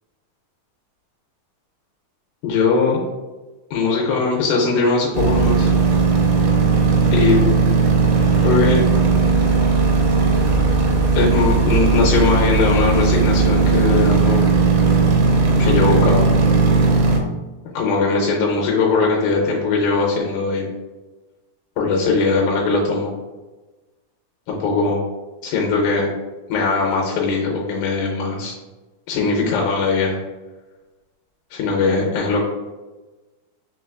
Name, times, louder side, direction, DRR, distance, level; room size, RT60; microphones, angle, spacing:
voice 1, 2.4-3.0 3.7-5.7 7.1-7.5 8.4-8.8 11.2-14.5 15.6-16.3 17.7-20.7 21.8-23.1 24.5-25.1 25.4-26.1 26.5-28.5 29.1-30.2 31.5-32.4, left 4 dB, 80° left, -1 dB, 2.4 m, -20 dB
sound 1, 5.1-17.2, right 4 dB, 80° right, 1.9 m, -16 dB
5.7 x 3.0 x 2.3 m, 1.2 s
omnidirectional pair, 4.3 m